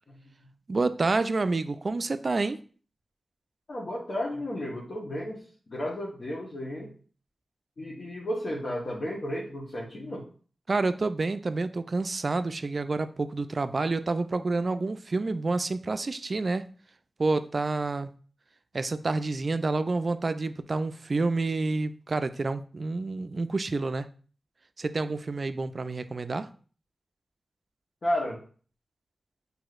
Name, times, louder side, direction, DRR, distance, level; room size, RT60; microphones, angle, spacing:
voice 1, 0.7-2.6 10.7-16.7 17.2-18.1 18.7-24.1 24.8-26.5, right 3 dB, 55° right, 11 dB, 0.3 m, -28 dB
voice 2, 3.7-5.4 5.7-6.9 7.8-10.2 28.0-28.4, left 1 dB, 60° left, -5 dB, 1.0 m, -33 dB
6.1 x 2.7 x 2.4 m, 0.41 s
cardioid pair, 50°, 0 cm